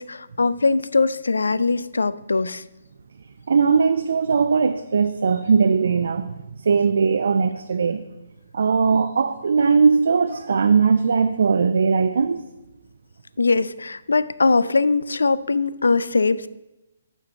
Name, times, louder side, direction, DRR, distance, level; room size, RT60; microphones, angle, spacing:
voice 1, 0.0-2.6 13.4-16.5, left 3 dB, 65° left, 17 dB, 0.3 m, -21 dB
voice 2, 3.5-6.3 6.6-8.0 8.5-12.4, right 5 dB, 55° right, 7 dB, 0.4 m, -19 dB
7.2 x 4.5 x 6.7 m, 1.0 s
figure-of-eight pair, 130°, 0 cm